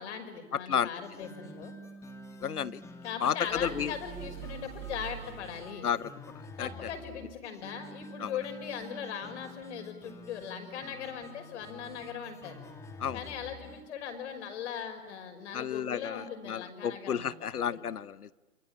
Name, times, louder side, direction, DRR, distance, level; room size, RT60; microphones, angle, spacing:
voice 1, 0.0-1.8 3.0-5.9 6.6-12.6 13.1-17.9, left 7 dB, 50° left, 6 dB, 5.9 m, -40 dB
sound 1, 1.0-13.9, left 1 dB, 5° left, 1.9 m, -48 dB
voice 2, 2.4-2.8 3.2-3.9 5.8-6.1 6.6-6.7 8.2-8.3 13.0-13.2 15.5-18.3, left 8 dB, 80° left, 18 dB, 1.1 m, -32 dB
sound 2, 3.4-5.8, right 13 dB, 20° right, 3.3 m, -44 dB
28.0 x 24.0 x 8.8 m, 1.2 s
hypercardioid pair, 140°, 45 cm